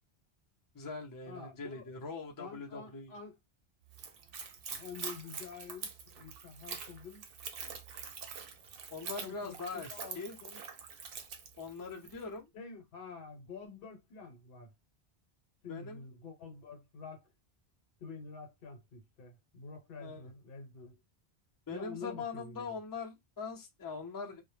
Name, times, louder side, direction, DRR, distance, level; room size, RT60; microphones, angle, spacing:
voice 1, 0.7-3.1 8.9-9.9 10.1-10.4 11.6-12.5 15.7-16.0 20.0-20.2 21.7-24.4, left 4 dB, 25° left, 0.4 m, -42 dB
voice 2, 1.3-1.9 2.4-3.4 4.7-7.2 9.2-10.6 12.5-14.7 15.6-17.3 18.0-21.0 21.7-22.8, left 5 dB, 60° left, 0.9 m, -48 dB
Splash splatter / Trickle dribble, 3.9-12.2, right 6 dB, 65° right, 0.7 m, -45 dB
2.0 x 2.0 x 3.2 m
omnidirectional pair, 1.1 m